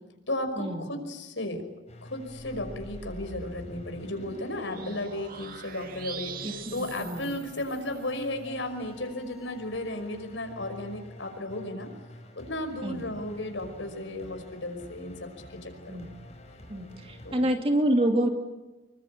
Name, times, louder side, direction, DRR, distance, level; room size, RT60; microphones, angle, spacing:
voice 1, 0.3-1.6 2.0-11.9 12.4-15.3 15.6-16.0 17.2-17.5, left 1 dB, 85° left, 6 dB, 5.5 m, -34 dB
sound 1, 1.9-17.4, left 1 dB, 35° left, 5.6 m, -49 dB
sound 2, 2.3-8.1, right 4 dB, 50° right, 1.9 m, -44 dB
voice 2, 6.4-7.4 12.8-13.0 15.9-16.1 16.7-18.3, right 1 dB, 30° right, 4 dB, 2.6 m, -28 dB
27.0 x 23.0 x 8.7 m, 1.1 s
head